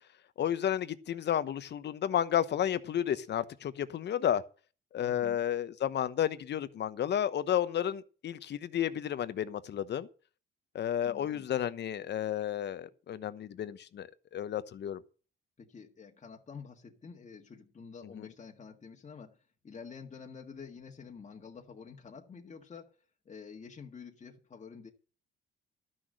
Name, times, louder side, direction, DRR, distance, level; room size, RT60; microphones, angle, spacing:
voice 1, 0.4-4.4 4.9-10.1 10.7-15.0 18.2-18.3, left 10 dB, 60° left, 1.0 m, -32 dB
voice 2, 5.0-5.4 11.0-11.4 15.6-23.0 23.2-24.9, left 5 dB, 35° left, 1.6 m, -49 dB
12.0 x 6.5 x 7.6 m
cardioid pair, 90°, 20 cm